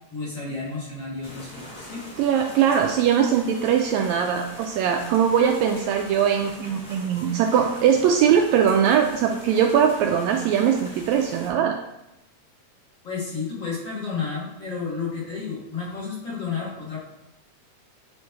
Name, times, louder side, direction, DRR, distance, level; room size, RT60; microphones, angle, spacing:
voice 1, 0.1-2.0 13.0-17.0, left 5 dB, 45° left, -7 dB, 1.8 m, -31 dB
sound 1, 1.2-11.5, equal, 20° left, 1.5 m, -42 dB
voice 2, 2.2-11.8, right 8 dB, 80° right, 3 dB, 1.7 m, -21 dB
7.9 x 3.1 x 4.5 m, 0.89 s
omnidirectional pair, 3.5 m